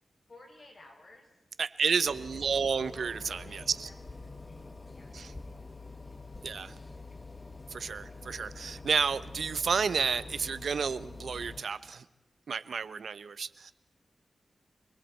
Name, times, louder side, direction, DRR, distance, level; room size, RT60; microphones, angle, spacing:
voice 1, 0.3-1.3 2.0-5.5, left 2 dB, 45° left, -1 dB, 7.7 m, -56 dB
voice 2, 1.6-3.9 5.1-5.3 6.4-6.7 7.7-12.0 12.5-13.7, right 5 dB, 80° right, 14 dB, 0.9 m, -31 dB
sound 1, 2.0-11.6, left 3 dB, 30° left, 1.4 m, -46 dB
29.0 x 21.5 x 4.5 m, 0.99 s
wide cardioid pair, 75°, 0 cm